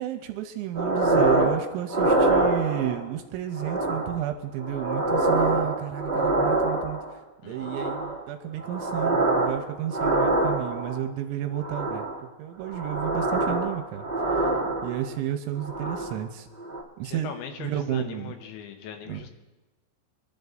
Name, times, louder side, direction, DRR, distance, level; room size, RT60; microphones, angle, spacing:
voice 1, 0.0-12.1 12.4-14.1 14.4-14.5 14.8-16.5 17.0-17.3 17.6-18.4 19.1-19.2, right 11 dB, 85° right, 6 dB, 3.0 m, -32 dB
sound 1, 0.7-1.6 1.9-3.0 3.5-4.2 4.6-7.1 7.5-8.2 8.6-9.6 9.9-11.0 11.6-12.2 12.6-15.1 15.6-16.2 16.6-16.8, right 2 dB, 20° right, 1.4 m, -25 dB
voice 2, 7.4-7.8 15.1-15.3 17.0-19.3, left 8 dB, 80° left, 5 dB, 3.2 m, -40 dB
24.5 x 11.0 x 2.6 m, 1.2 s
omnidirectional pair, 5.4 m